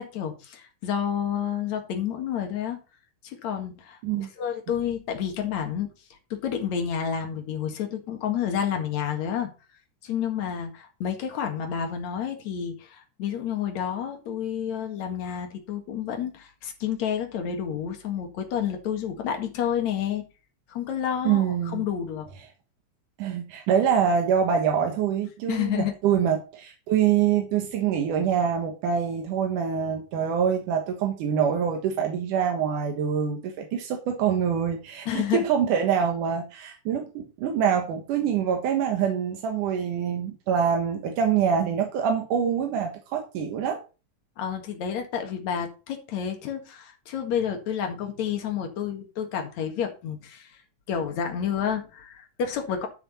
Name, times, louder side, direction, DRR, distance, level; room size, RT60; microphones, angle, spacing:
voice 1, 0.0-2.8 3.2-5.9 6.3-9.5 10.0-20.3 20.7-22.3 25.5-25.9 35.1-35.5 44.4-50.6 50.9-52.9, left 8 dB, 65° left, 3.0 m, -30 dB
voice 2, 21.2-21.8 23.2-43.8, right 8 dB, 90° right, 2.9 m, -25 dB
12.5 x 6.0 x 4.2 m
omnidirectional pair, 3.5 m